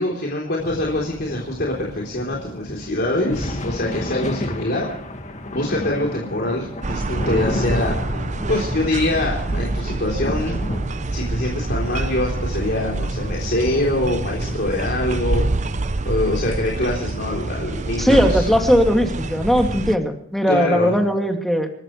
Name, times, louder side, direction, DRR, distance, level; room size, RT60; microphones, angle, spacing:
voice 1, 0.0-4.9 5.5-8.2 8.5-10.6 11.1-15.5 16.0-18.4 20.5-21.0, left 1 dB, 55° left, -2 dB, 3.7 m, -24 dB
sound 1, 0.6-19.1, left 1 dB, 40° left, 1.9 m, -32 dB
sound 2, 6.8-20.0, right 2 dB, 40° right, 0.6 m, -26 dB
voice 2, 18.0-21.7, equal, ahead, 3 dB, 2.4 m, -18 dB
28.0 x 13.5 x 3.3 m, 0.68 s
head